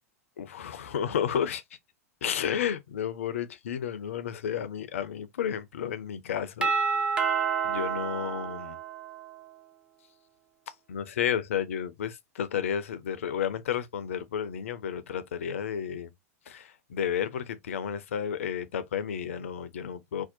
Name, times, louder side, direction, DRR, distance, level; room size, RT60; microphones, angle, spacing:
voice 1, 0.4-1.6 2.2-6.7 7.6-8.8 10.9-16.1 16.5-20.3, left 8 dB, 60° left, 0.4 m, -32 dB
Doorbell, 6.6-9.4, right 6 dB, 10° right, 0.4 m, -29 dB
2.6 x 2.0 x 2.5 m
figure-of-eight pair, 95°, 8 cm